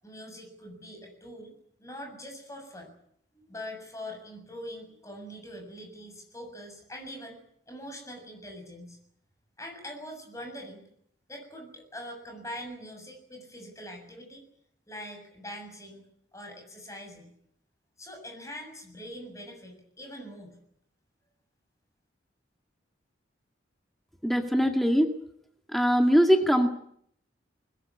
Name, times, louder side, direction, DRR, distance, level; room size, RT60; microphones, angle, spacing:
voice 1, 0.0-2.9 3.3-7.4 7.7-9.0 9.6-10.8 11.3-14.4 14.9-16.0 16.3-17.3 18.0-20.6, equal, 15° left, 4 dB, 7.2 m, -43 dB
voice 2, 24.2-25.1 25.7-26.7, equal, ahead, 4 dB, 2.0 m, -22 dB
22.0 x 21.0 x 9.8 m, 0.68 s
head